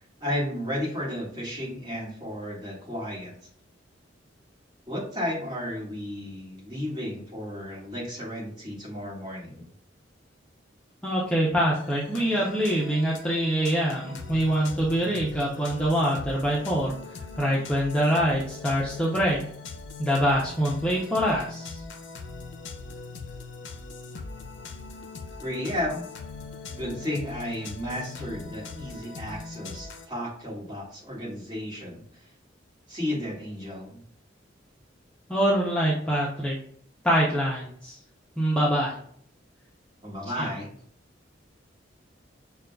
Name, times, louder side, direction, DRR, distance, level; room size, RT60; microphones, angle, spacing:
voice 1, 0.2-3.3 4.9-9.7 25.4-26.1 26.7-32.0 32.9-34.0 40.0-40.7, left 1 dB, 20° right, -7 dB, 1.6 m, -33 dB
voice 2, 11.0-17.0 17.4-19.4 20.0-21.8 35.3-36.6 37.0-38.0 38.4-38.9 40.4-40.5, equal, 5° left, -5 dB, 0.5 m, -24 dB
sound 1, 11.7-30.1, left 4 dB, 65° left, 0.5 m, -41 dB
6.2 x 2.3 x 2.2 m, 0.62 s
head